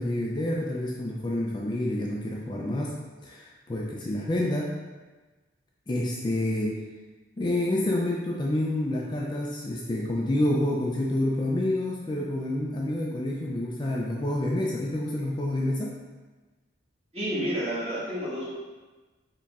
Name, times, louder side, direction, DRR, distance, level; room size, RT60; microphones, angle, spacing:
voice 1, 0.0-2.9 3.2-4.7 5.9-6.8 7.4-16.0, left 1 dB, 25° left, -2 dB, 0.3 m, -28 dB
voice 2, 17.1-18.5, equal, 30° right, -7 dB, 1.2 m, -30 dB
4.6 x 3.0 x 3.5 m, 1.2 s
head